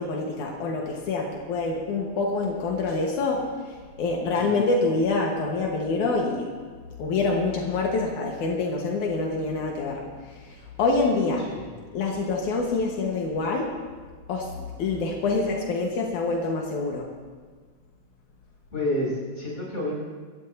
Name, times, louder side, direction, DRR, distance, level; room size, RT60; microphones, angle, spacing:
voice 1, 0.0-6.5 7.0-11.5 11.9-13.8 14.3-17.1, left 3 dB, 80° left, -1 dB, 2.9 m, -26 dB
voice 2, 18.7-20.0, left 1 dB, 20° left, -5 dB, 6.7 m, -29 dB
29.0 x 14.5 x 2.8 m, 1.5 s
omnidirectional pair, 3.5 m